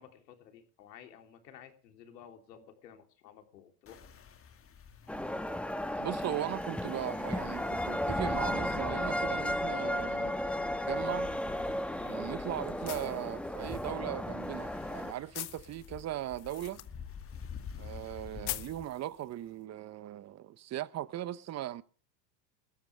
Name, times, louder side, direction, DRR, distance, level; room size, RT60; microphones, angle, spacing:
voice 1, 0.0-4.1 12.0-12.2, left 8 dB, 90° left, 3.3 m, -54 dB
sound 1, 3.9-18.9, left 6 dB, 25° left, 1.9 m, -50 dB
sound 2, 5.1-15.1, left 1 dB, ahead, 1.2 m, -34 dB
voice 2, 6.0-10.4 10.9-11.3 12.1-16.8 17.8-21.8, right 13 dB, 35° right, 0.8 m, -38 dB
sound 3, 11.1-19.6, left 19 dB, 55° left, 1.2 m, -47 dB
20.0 x 14.0 x 3.3 m
supercardioid pair, 110°, 48 cm